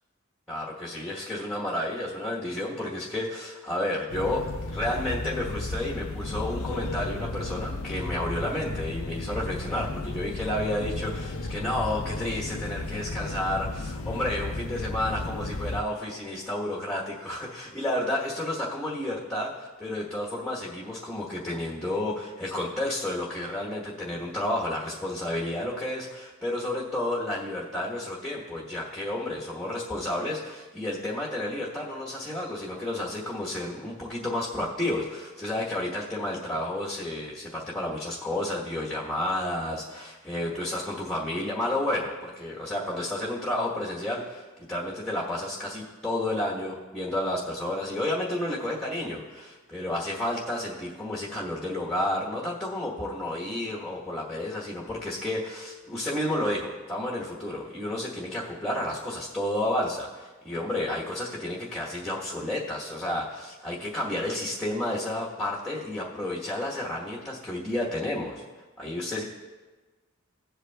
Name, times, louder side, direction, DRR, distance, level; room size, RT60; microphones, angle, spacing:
voice 1, 0.5-68.4 68.8-69.2, left 1 dB, ahead, -4 dB, 1.1 m, -31 dB
sound 1, 4.1-15.8, left 2 dB, 90° left, 0.6 m, -34 dB
17.0 x 8.1 x 2.3 m, 1.3 s
head